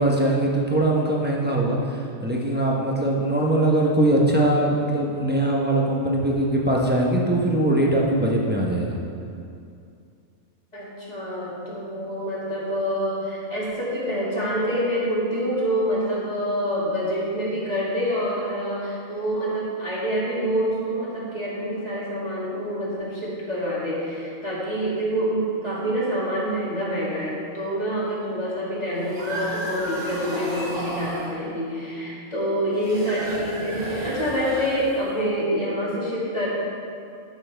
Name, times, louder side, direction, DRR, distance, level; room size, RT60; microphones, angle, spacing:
voice 1, 0.0-9.0, right 1 dB, 10° right, -3 dB, 0.9 m, -21 dB
voice 2, 10.7-36.5, equal, 30° left, -8 dB, 2.3 m, -26 dB
sound 1, 28.9-31.4 32.7-35.2, right 1 dB, 70° right, 2.0 m, -33 dB
12.5 x 6.1 x 3.4 m, 2.4 s
omnidirectional pair, 1.4 m